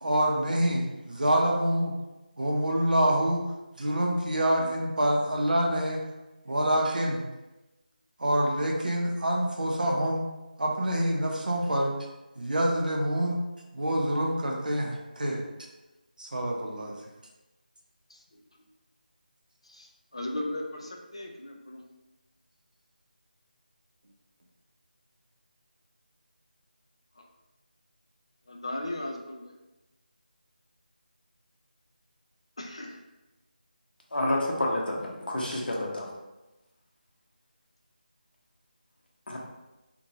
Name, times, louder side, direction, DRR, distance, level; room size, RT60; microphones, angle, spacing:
voice 1, 0.0-1.9 2.4-3.4 3.8-6.0 6.5-7.2 8.2-10.3 10.6-11.9 12.4-13.4 13.7-15.4 16.2-16.9, right 1 dB, 60° right, 0 dB, 0.6 m, -26 dB
voice 2, 18.1-18.4 19.6-21.8 27.2-27.3 28.5-29.5 32.6-33.0, left 1 dB, 35° left, 1 dB, 0.3 m, -37 dB
voice 3, 34.1-36.1 39.3-39.4, left 1 dB, 75° left, -2 dB, 0.8 m, -29 dB
2.8 x 2.2 x 2.7 m, 1.0 s
figure-of-eight pair, 180°, 5 cm